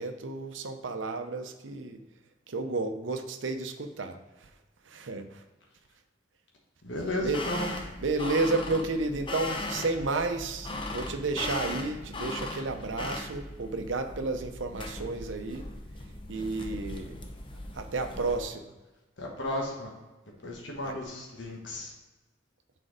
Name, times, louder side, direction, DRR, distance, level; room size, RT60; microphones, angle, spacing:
voice 1, 0.0-2.0 2.5-4.5 4.8-5.4 7.2-7.5 8.0-15.7 16.3-17.2 17.7-18.7 20.8-21.0, right 3 dB, 85° right, 6 dB, 0.7 m, -32 dB
voice 2, 6.8-7.7 19.2-19.9 20.4-21.9, left 1 dB, 75° left, -1 dB, 1.3 m, -34 dB
sound 1, 7.0-18.4, left 2 dB, 25° left, 0.6 m, -38 dB
6.4 x 4.4 x 4.9 m, 1.1 s
head